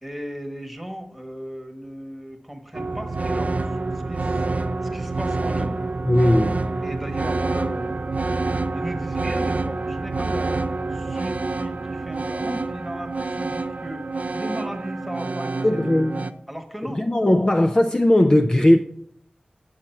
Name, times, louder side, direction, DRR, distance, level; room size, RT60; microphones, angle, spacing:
voice 1, 0.0-3.8 4.1-5.8 6.8-8.0 8.7-10.6 10.9-15.7 16.5-17.0, equal, ahead, 1.4 m, -36 dB
sound 1, 2.7-16.3, right 3 dB, 60° right, 0.5 m, -27 dB
voice 2, 6.1-6.6 15.6-16.2 17.0-18.8, left 1 dB, 30° left, 0.4 m, -18 dB
8.6 x 7.1 x 4.5 m
wide cardioid pair, 55°, 3 cm